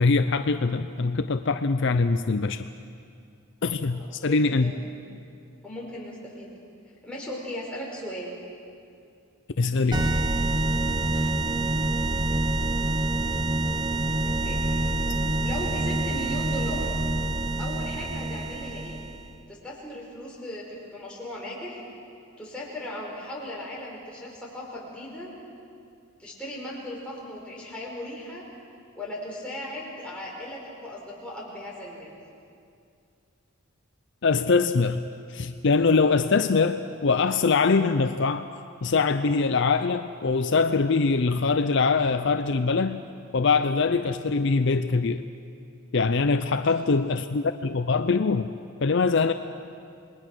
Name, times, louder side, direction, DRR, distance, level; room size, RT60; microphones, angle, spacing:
voice 1, 0.0-2.6 3.6-4.7 9.6-10.2 34.2-35.0 35.3-38.5 38.8-43.0 43.3-45.2 45.9-48.5 48.8-49.3, left 4 dB, 55° left, 9 dB, 0.6 m, -23 dB
voice 2, 3.9-4.8 5.6-6.5 7.0-8.3 14.2-14.6 15.4-16.9 17.6-19.0 19.5-21.8 22.4-25.3 26.2-28.4 28.9-32.1 46.6-46.7, left 1 dB, 5° left, -5 dB, 4.9 m, -37 dB
sound 1, 9.9-19.3, right 2 dB, 20° right, 0.7 m, -26 dB
28.0 x 21.0 x 6.2 m, 2.4 s
head